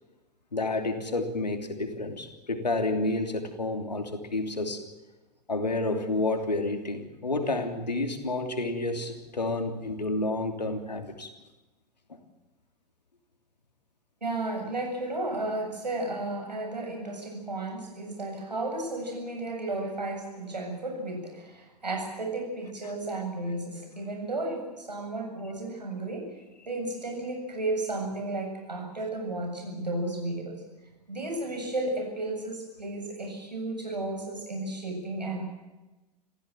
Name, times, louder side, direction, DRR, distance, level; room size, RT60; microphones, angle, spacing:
voice 1, 0.5-4.8 5.5-11.4, left 2 dB, 80° left, 6 dB, 3.2 m, -30 dB
voice 2, 14.2-26.3 26.7-30.6 31.1-35.5, right 2 dB, 80° right, 2 dB, 7.6 m, -33 dB
27.5 x 16.0 x 7.5 m, 1.1 s
figure-of-eight pair, 90°, 21 cm